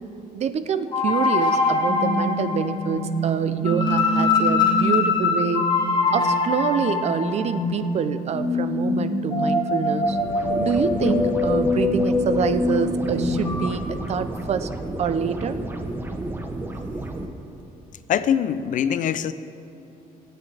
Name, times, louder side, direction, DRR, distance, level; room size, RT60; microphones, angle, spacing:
voice 1, 0.3-5.7 6.1-10.2 10.6-14.7 15.0-15.6, right 7 dB, 45° right, 11 dB, 0.5 m, -26 dB
sound 1, 0.9-13.7, left 3 dB, 30° left, 1.3 m, -23 dB
sound 2, 10.0-17.3, right 2 dB, 15° right, 0.8 m, -32 dB
voice 2, 18.1-19.3, left 9 dB, 60° left, 13 dB, 0.5 m, -23 dB
21.5 x 8.4 x 3.3 m, 2.8 s
cardioid pair, 145°, 15 cm